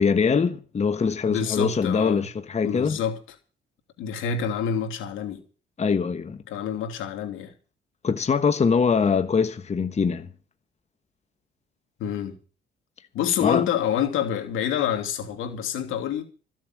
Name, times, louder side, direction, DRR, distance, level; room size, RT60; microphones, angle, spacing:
voice 1, 0.0-3.0 5.8-6.4 8.0-10.3 13.4-13.6, left 5 dB, 35° left, 1.2 m, -23 dB
voice 2, 1.3-2.3 2.6-3.2 4.0-5.4 6.5-7.5 12.0-12.4 13.1-16.2, left 8 dB, 90° left, 3.0 m, -27 dB
15.0 x 7.5 x 9.3 m
cardioid pair, 90°, 20 cm